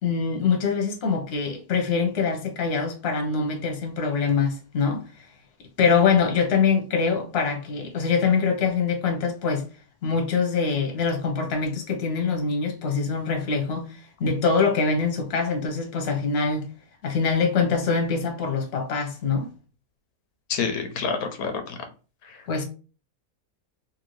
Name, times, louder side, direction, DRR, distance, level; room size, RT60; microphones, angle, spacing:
voice 1, 0.0-5.0 5.8-9.7 10.0-16.7 17.0-19.5 22.5-22.6, left 5 dB, 50° left, 1.0 m, -24 dB
voice 2, 20.5-21.8 22.2-22.4, left 5 dB, 85° left, 1.1 m, -28 dB
2.8 x 2.6 x 3.0 m
omnidirectional pair, 1.6 m